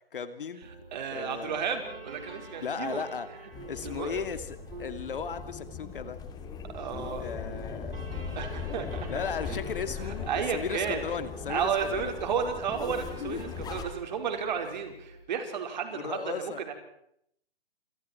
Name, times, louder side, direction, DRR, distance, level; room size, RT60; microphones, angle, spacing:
voice 1, 0.0-0.7 1.1-1.6 2.6-3.3 3.7-6.2 7.2-8.1 9.1-12.1 13.2-13.6 15.9-16.6, left 6 dB, 60° left, 11 dB, 2.7 m, -36 dB
sound 1, 0.6-15.2, right 2 dB, 70° right, 6.9 m, -47 dB
voice 2, 0.9-3.0 3.8-4.2 6.7-7.3 8.3-9.0 10.3-11.0 11.5-16.7, right 7 dB, 45° right, 5 dB, 5.1 m, -32 dB
sound 2, 3.5-13.8, left 6 dB, 15° left, 2.5 m, -39 dB
28.5 x 27.5 x 4.6 m, 0.72 s
figure-of-eight pair, 135°, 30 cm